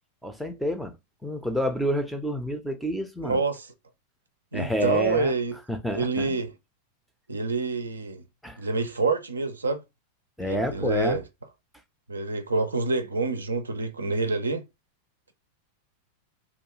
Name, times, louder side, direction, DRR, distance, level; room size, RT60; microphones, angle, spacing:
voice 1, 0.2-0.9 1.2-3.4 4.5-5.3 5.7-6.4 8.4-8.6 10.4-11.2, equal, ahead, 0.5 m, -29 dB
voice 2, 3.2-3.7 4.5-5.6 5.9-6.5 7.3-8.2 8.6-9.8 10.4-11.2 12.1-14.7, right 3 dB, 75° right, 0.4 m, -27 dB
2.3 x 2.2 x 3.0 m
figure-of-eight pair, 90°, 0 cm